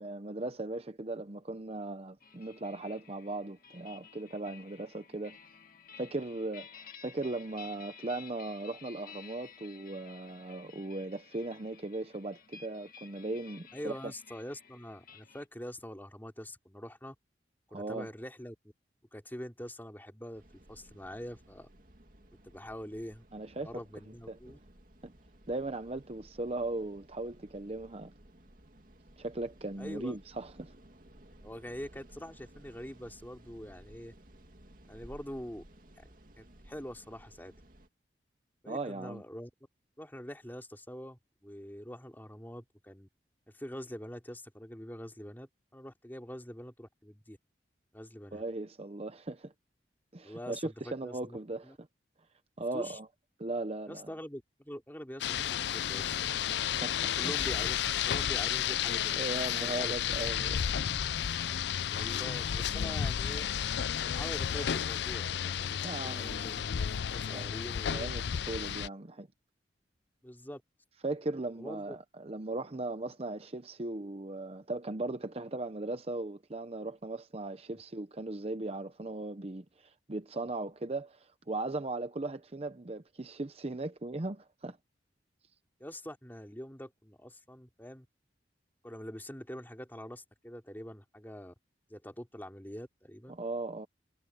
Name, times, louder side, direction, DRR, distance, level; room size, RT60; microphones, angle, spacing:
voice 1, 0.0-5.4 6.0-14.1 17.7-18.1 23.3-23.7 24.3-24.4 25.0-25.1 25.5-28.1 29.2-30.7 38.7-39.2 48.3-49.5 50.1-51.9 52.6-53.1 53.4-54.1 56.8-57.3 59.1-60.6 65.8-66.5 67.3-67.5 67.9-69.3 71.0-84.8 93.3-93.9, right 2 dB, 35° right, 0.8 m, -38 dB
sound 1, 2.2-15.5, left 7 dB, 55° left, 2.1 m, -54 dB
voice 2, 13.7-17.1 17.7-18.7 19.1-20.4 20.7-21.7 22.4-23.2 23.5-24.6 29.8-30.2 31.4-34.1 34.9-35.6 36.0-36.1 36.4-37.5 38.6-39.5 40.0-43.1 43.5-47.4 47.9-48.4 50.2-51.4 51.6-51.8 52.7-53.0 53.9-56.1 57.1-57.8 58.1-60.2 61.9-63.5 64.0-68.1 70.2-70.6 71.6-72.0 85.8-88.1 88.8-91.5 91.9-93.4, equal, 10° left, 3.2 m, -44 dB
sound 2, 20.3-37.9, right 1 dB, 50° right, 2.4 m, -57 dB
Rain, 55.2-68.9, left 9 dB, 75° left, 0.4 m, -32 dB
head